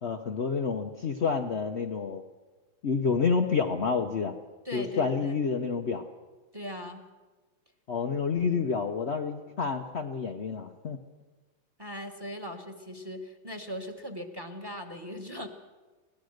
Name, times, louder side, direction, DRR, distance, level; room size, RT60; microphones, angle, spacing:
voice 1, 0.0-2.2 2.8-4.3 4.7-6.0 7.9-11.0, left 5 dB, 75° left, 3 dB, 0.6 m, -29 dB
voice 2, 4.6-5.4 6.5-7.0 11.8-15.5, equal, 15° right, 6 dB, 1.2 m, -39 dB
24.0 x 17.0 x 6.5 m, 1.3 s
omnidirectional pair, 2.4 m